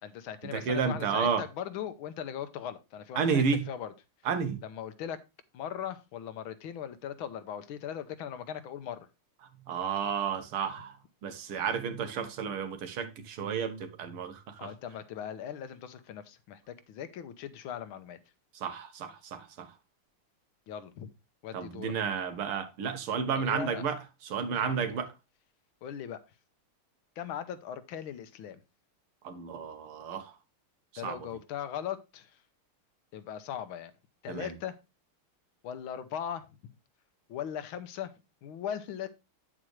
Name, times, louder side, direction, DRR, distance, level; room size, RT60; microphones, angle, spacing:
voice 1, 0.0-3.9 4.6-5.2 5.5-9.1 14.6-18.2 20.7-21.1 21.4-21.9 23.3-23.8 24.6-24.9 25.8-26.2 27.2-28.6 31.0-32.4 33.1-33.9 34.2-34.8 35.6-36.5 37.3-38.1 38.4-39.1, left 9 dB, 75° left, 1.7 m, -39 dB
voice 2, 0.5-1.4 3.2-3.7 4.3-4.6 9.7-11.0 11.2-14.7 18.5-19.7 21.5-25.1 29.2-30.3 31.0-31.2 34.3-34.5, right 6 dB, 85° right, 2.1 m, -31 dB
8.9 x 7.7 x 3.2 m
omnidirectional pair, 2.3 m